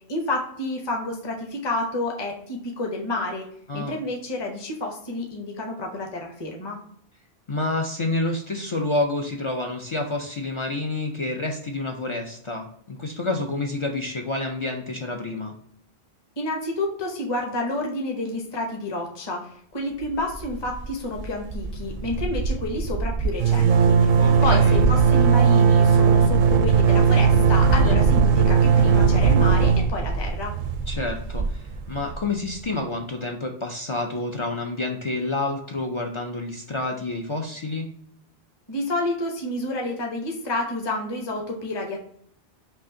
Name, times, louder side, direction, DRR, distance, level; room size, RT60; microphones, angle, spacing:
voice 1, 0.1-3.5 3.7-6.8 16.4-24.1 24.4-30.5 38.7-42.0, left 2 dB, 25° left, 1 dB, 0.8 m, -29 dB
voice 2, 7.5-15.5 24.2-24.8 27.8-28.0 30.9-37.9, left 2 dB, 45° left, 2 dB, 0.4 m, -28 dB
sound 1, 20.3-20.9 21.1-21.3 21.5-32.2, right 5 dB, 60° right, 0.6 m, -18 dB
5.5 x 2.5 x 2.7 m, 0.66 s
omnidirectional pair, 1.1 m